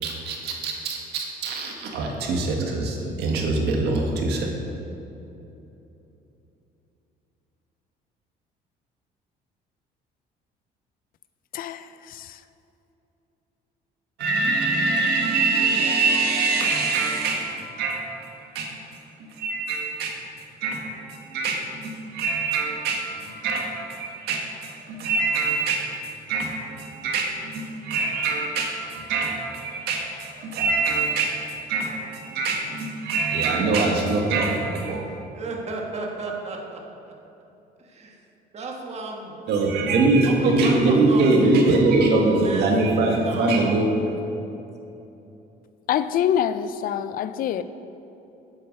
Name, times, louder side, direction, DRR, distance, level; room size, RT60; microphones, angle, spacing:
voice 1, 0.0-4.5 14.2-18.2 18.5-18.7 19.2-20.1 20.6-25.9 26.3-31.3 31.7-35.0 39.5-43.9, right 3 dB, 80° right, 1 dB, 1.7 m, -23 dB
voice 2, 35.3-37.1 37.8-38.3 38.5-39.3 40.2-41.8 42.2-44.2, right 3 dB, 40° right, 0 dB, 1.5 m, -34 dB
voice 3, 45.9-47.6, left 9 dB, 60° left, 13 dB, 0.5 m, -24 dB
8.5 x 7.9 x 5.3 m, 3.0 s
cardioid pair, 110°, 17 cm